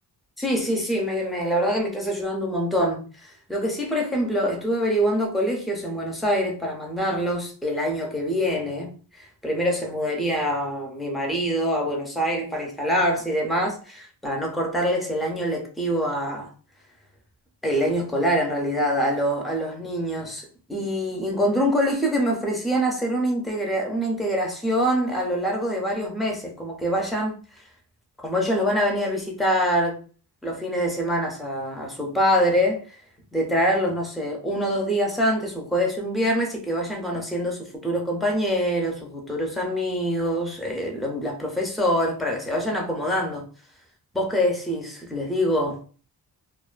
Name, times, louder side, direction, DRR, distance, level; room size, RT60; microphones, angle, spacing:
voice 1, 0.4-16.5 17.6-27.4 28.2-30.0 30.4-32.8 33.3-43.4 44.1-45.8, equal, ahead, 0.4 m, -25 dB
2.4 x 2.2 x 2.4 m
wide cardioid pair, 145°, 39 cm